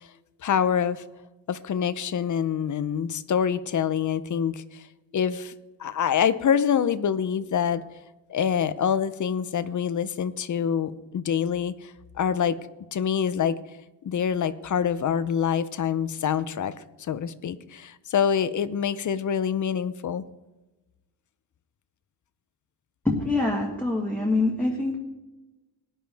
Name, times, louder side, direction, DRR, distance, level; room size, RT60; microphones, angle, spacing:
voice 1, 0.4-1.0 1.5-4.9 5.1-5.5 5.8-7.8 8.3-12.6 12.9-13.6 14.0-16.7 17.1-20.2, left 8 dB, 40° left, 15 dB, 0.6 m, -26 dB
voice 2, 23.0-25.0, left 2 dB, 5° left, -2 dB, 1.5 m, -25 dB
19.0 x 11.0 x 3.4 m, 1.1 s
wide cardioid pair, 160°, 47 cm